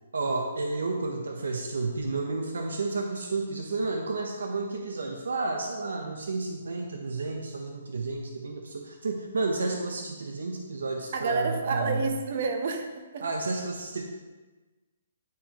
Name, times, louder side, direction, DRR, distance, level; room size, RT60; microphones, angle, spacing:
voice 1, 0.1-12.0 13.2-14.0, right 3 dB, 90° right, 2 dB, 0.8 m, -31 dB
voice 2, 11.1-13.3, right 4 dB, 50° right, 5 dB, 0.8 m, -29 dB
9.7 x 4.3 x 3.0 m, 1.3 s
hypercardioid pair, 165°, 0 cm